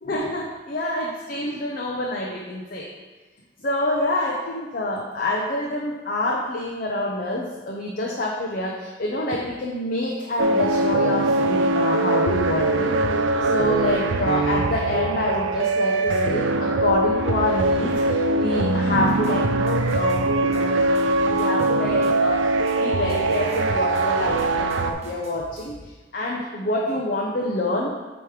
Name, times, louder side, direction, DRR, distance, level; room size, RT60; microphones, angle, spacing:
voice 1, 0.0-2.9 3.6-13.0 13.4-20.7 21.2-22.5 22.8-28.0, left 1 dB, 50° left, -2 dB, 0.7 m, -27 dB
sound 1, 10.4-24.9, right 2 dB, 75° right, 0.5 m, -22 dB
sound 2, 19.0-20.2 20.5-23.6 23.9-25.9, equal, 35° right, 1.2 m, -45 dB
8.0 x 3.1 x 4.9 m, 1.2 s
head